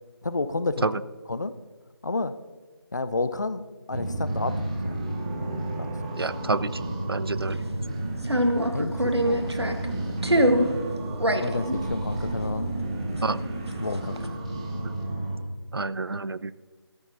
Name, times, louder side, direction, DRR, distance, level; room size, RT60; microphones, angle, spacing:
voice 1, 0.2-0.9 1.3-1.5 2.0-2.3 2.9-4.9 5.7-6.2 8.3-10.2 11.4-12.7 13.8-14.2, left 3 dB, 45° left, 13 dB, 0.4 m, -31 dB
sound 1, 3.9-15.4, right 1 dB, 15° right, 0.8 m, -31 dB
voice 2, 6.2-6.7 7.1-7.6 13.2-13.4 14.8-15.0 15.7-16.5, right 3 dB, 65° right, 16 dB, 0.4 m, -28 dB
sound 2, 7.3-7.7 8.2-9.9 10.2-10.8 11.1-13.4 13.7-14.3, equal, 85° right, 1.1 m, -25 dB
13.5 x 13.5 x 2.6 m, 1.3 s
figure-of-eight pair, 160°, 13 cm